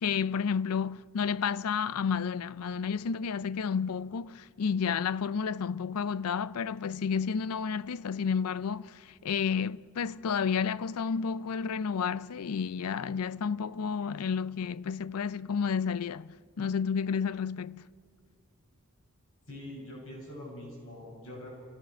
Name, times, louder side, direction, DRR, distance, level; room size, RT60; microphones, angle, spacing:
voice 1, 0.0-17.9, left 6 dB, 80° left, 0.4 m, -31 dB
voice 2, 19.5-21.5, left 1 dB, 60° left, 7.4 m, -44 dB
28.0 x 17.0 x 6.5 m
head